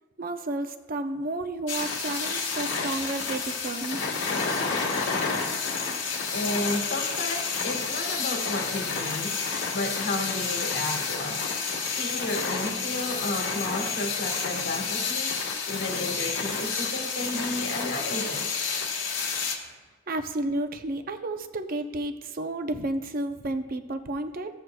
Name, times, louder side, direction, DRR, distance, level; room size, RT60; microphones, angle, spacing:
voice 1, 0.2-4.0 20.1-24.5, right 2 dB, 50° right, 8 dB, 0.6 m, -31 dB
sound 1, 1.7-19.5, left 5 dB, 85° left, 1.4 m, -30 dB
voice 2, 6.1-11.5 11.9-15.4 15.7-18.5, left 1 dB, 65° left, 1 dB, 1.4 m, -32 dB
15.0 x 7.7 x 2.3 m, 1.3 s
head